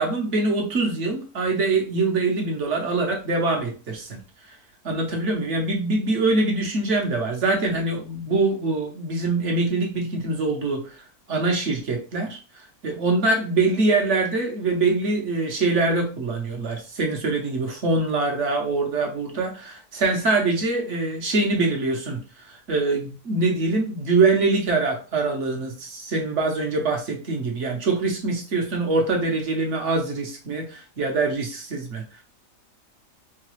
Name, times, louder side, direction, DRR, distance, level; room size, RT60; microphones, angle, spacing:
voice 1, 0.0-4.2 4.8-11.0 11.3-12.4 12.8-22.2 22.4-32.0, right 3 dB, 55° right, 2 dB, 1.0 m, -24 dB
4.7 x 2.2 x 3.0 m, 0.34 s
omnidirectional pair, 1.7 m